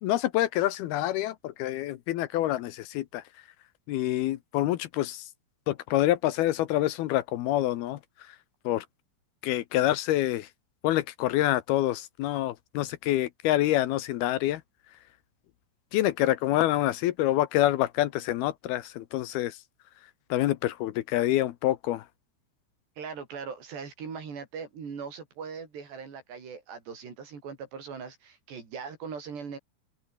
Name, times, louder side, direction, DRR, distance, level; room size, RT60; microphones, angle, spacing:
voice 1, 0.0-3.5 3.9-5.3 5.7-8.4 8.6-8.9 9.4-10.5 10.8-14.6 14.9-15.0 15.9-19.6 20.0-22.1, left 14 dB, 75° left, 2.3 m, -27 dB
voice 2, 23.0-29.6, right 6 dB, 60° right, 7.4 m, -40 dB
open air
omnidirectional pair, 5.7 m